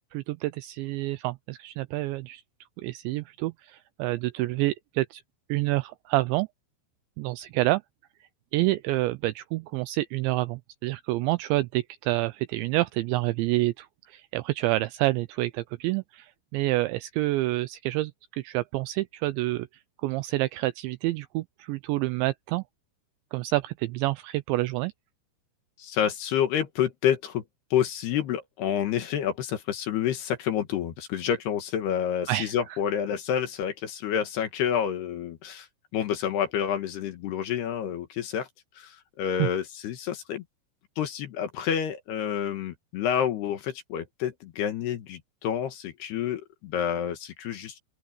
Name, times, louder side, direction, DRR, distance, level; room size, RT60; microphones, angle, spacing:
voice 1, 0.1-2.4 2.8-5.2 5.5-6.5 7.2-7.8 8.5-19.7 20.0-22.6 23.3-24.9 32.3-32.5 39.4-39.5, right 18 dB, 85° right, 2.6 m, -28 dB
voice 2, 25.8-27.4 27.7-35.7 35.9-38.5 38.8-40.4 41.0-47.8, left 9 dB, 65° left, 3.1 m, -28 dB
open air
omnidirectional pair, 5.7 m